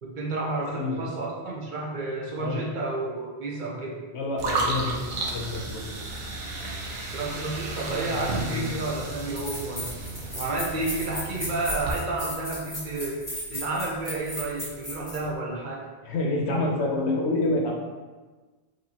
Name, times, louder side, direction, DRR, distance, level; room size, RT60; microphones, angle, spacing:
voice 1, 0.0-4.0 7.1-9.9 10.3-13.2 13.5-15.9, right 2 dB, 50° right, -2 dB, 0.8 m, -31 dB
voice 2, 0.8-1.1 2.4-2.6 4.1-5.0 5.3-5.9 8.1-8.2 8.5-8.7 16.0-17.7, left 2 dB, 70° left, 0 dB, 1.0 m, -27 dB
sound 1, 4.4-11.9, right 2 dB, 85° right, 1.0 m, -33 dB
sound 2, 9.3-15.2, left 1 dB, 15° left, 1.4 m, -35 dB
5.0 x 3.0 x 2.8 m, 1.3 s
omnidirectional pair, 1.2 m